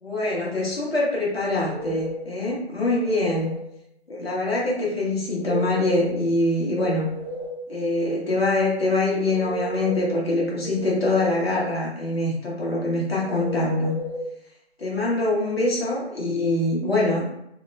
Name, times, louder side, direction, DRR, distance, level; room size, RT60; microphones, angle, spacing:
voice 1, 0.0-3.5 4.1-7.1 7.7-13.9 14.8-17.2, left 2 dB, 60° left, -4 dB, 1.1 m, -24 dB
sound 1, 1.5-2.3 2.8-3.7 5.3-6.3 6.6-7.7 9.1-10.2 10.6-11.6 13.2-14.2, right 2 dB, 75° right, 0.6 m, -34 dB
2.8 x 2.1 x 2.5 m, 0.78 s
figure-of-eight pair, 180°, 33 cm